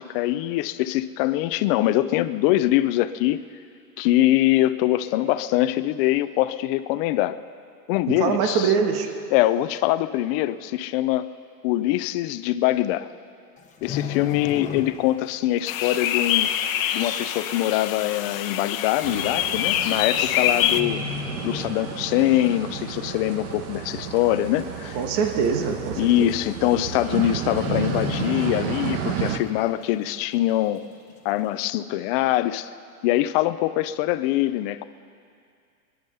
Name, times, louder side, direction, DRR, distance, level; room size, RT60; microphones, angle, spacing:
voice 1, 0.0-3.4 4.0-7.4 7.9-8.7 9.3-11.3 11.6-13.1 13.8-16.5 16.9-21.0 21.4-25.0 26.0-30.8 31.2-32.7 33.0-34.8, left 15 dB, 40° left, 13 dB, 0.6 m, -23 dB
voice 2, 8.1-9.1 24.9-26.3, right 6 dB, 45° right, 5 dB, 1.7 m, -23 dB
sound 1, 13.6-15.3 15.6-15.9 16.4-16.5 17.4-17.5 17.7-17.8 18.7-18.9 20.0-20.4 20.7-22.2 22.6-22.8 23.3-23.8 24.2-24.3 24.5-24.6 25.0-25.1 26.1-26.2 26.4-26.7 27.0-27.1 27.5-29.2 29.5-29.6, left 8 dB, 15° left, 1.2 m, -34 dB
sound 2, 15.7-20.8, left 11 dB, 60° left, 1.0 m, -25 dB
sound 3, 19.0-29.4, right 8 dB, 65° right, 1.6 m, -32 dB
22.0 x 11.0 x 5.6 m, 2.4 s
supercardioid pair, 140°, 46 cm